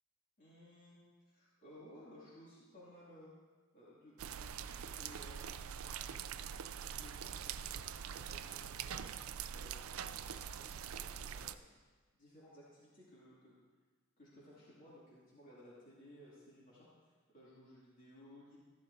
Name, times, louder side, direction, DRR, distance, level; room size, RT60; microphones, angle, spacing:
voice 1, 0.4-3.3 3.7-5.8 6.9-9.3 9.5-11.8 12.2-13.6 14.2-18.6, equal, 40° left, -8 dB, 2.6 m, -59 dB
sound 1, 4.2-11.5, right 8 dB, 75° right, 0.4 m, -44 dB
13.5 x 11.5 x 2.7 m, 1.4 s
head